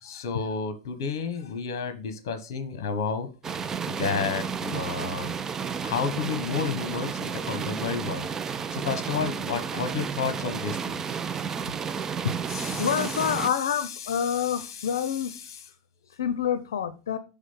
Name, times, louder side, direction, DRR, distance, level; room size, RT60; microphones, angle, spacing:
voice 1, 0.0-3.3 3.9-5.3 5.8-8.3 8.7-11.0 12.5-15.6, left 5 dB, 70° left, 10 dB, 1.2 m, -32 dB
sound 1, 3.4-13.5, right 6 dB, 20° right, 0.5 m, -32 dB
voice 2, 12.8-15.3 16.2-17.2, left 8 dB, 90° left, 12 dB, 0.6 m, -27 dB
7.3 x 3.6 x 5.6 m, 0.33 s
supercardioid pair, 125°, 2 cm